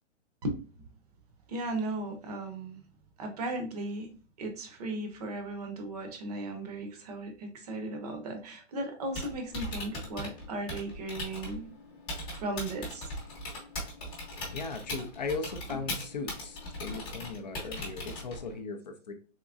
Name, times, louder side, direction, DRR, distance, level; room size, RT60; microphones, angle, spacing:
voice 1, 1.5-2.8 3.2-4.1 4.4-11.7 12.3-13.1 15.7-15.8, right 2 dB, 30° right, 5 dB, 0.7 m, -36 dB
Typing, 9.0-18.6, left 1 dB, 10° left, 0.7 m, -40 dB
voice 2, 14.5-19.1, left 4 dB, 35° left, 6 dB, 0.4 m, -38 dB
3.6 x 3.0 x 2.3 m, 0.38 s
hypercardioid pair, 150°, 38 cm